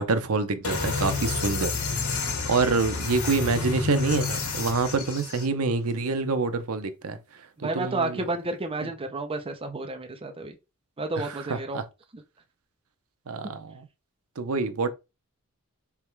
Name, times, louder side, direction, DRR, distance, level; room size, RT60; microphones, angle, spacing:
voice 1, 0.0-1.7 2.5-7.2 7.6-8.3 11.2-11.8 13.3-13.9 14.4-14.9, right 4 dB, 70° right, 0.7 m, -26 dB
sound 1, 0.6-5.4, left 4 dB, 70° left, 1.7 m, -29 dB
voice 2, 7.6-10.5 11.0-11.8 12.1-12.2, right 2 dB, 25° right, 0.6 m, -31 dB
3.5 x 3.1 x 4.5 m
head